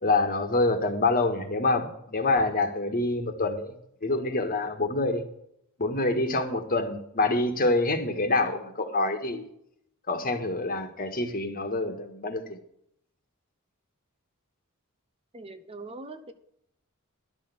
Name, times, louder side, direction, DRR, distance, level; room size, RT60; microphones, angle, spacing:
voice 1, 0.0-3.7 4.0-5.2 5.8-9.5 10.1-12.6, left 2 dB, 40° left, 6 dB, 1.6 m, -26 dB
voice 2, 15.3-16.3, right 2 dB, 25° right, 9 dB, 0.8 m, -42 dB
12.0 x 6.3 x 8.4 m, 0.73 s
head